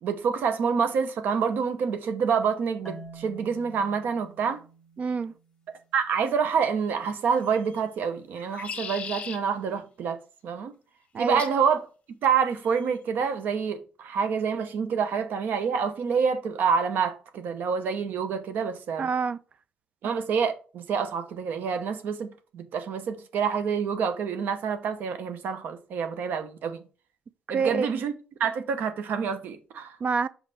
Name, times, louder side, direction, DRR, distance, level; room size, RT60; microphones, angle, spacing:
voice 1, 0.0-4.6 5.9-10.2 10.4-10.7 11.2-11.8 12.2-19.1 20.0-22.3 22.5-26.8 27.5-28.1 28.4-30.0, right 6 dB, 70° right, 0.9 m, -27 dB
Marimba xylophone, 2.8-5.8, right 2 dB, 10° left, 0.8 m, -47 dB
voice 2, 5.0-5.3 11.1-11.4 19.0-19.4 27.5-27.9 30.0-30.3, right 5 dB, 45° right, 0.4 m, -26 dB
sound 1, 7.3-7.8 8.3-9.4 11.4-11.6 12.6-13.0, left 6 dB, 40° left, 0.9 m, -38 dB
5.5 x 4.8 x 4.1 m
cardioid pair, 130°, 3 cm